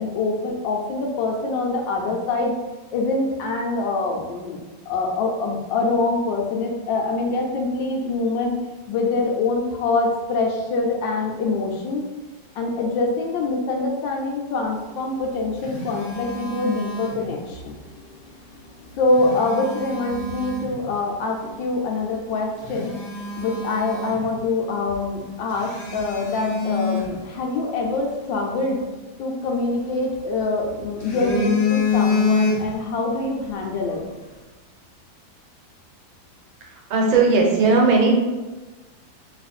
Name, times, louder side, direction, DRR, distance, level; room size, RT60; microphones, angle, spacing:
voice 1, 0.0-2.6 2.9-4.6 4.9-8.6 8.9-12.1 12.5-17.8 19.0-23.0 23.3-28.8 29.2-34.0, left 3 dB, 75° left, 0 dB, 1.3 m, -24 dB
Telephone, 15.1-17.6 18.9-20.8 21.4-21.6 22.1-22.2 22.6-24.6 24.9-25.0 25.5-27.9 29.4-30.4 30.8-33.0 33.2-33.5, left 3 dB, 45° left, 0.7 m, -27 dB
voice 2, 36.6-38.1, right 3 dB, 85° right, -1 dB, 1.7 m, -18 dB
3.1 x 3.0 x 4.2 m, 1.2 s
omnidirectional pair, 2.1 m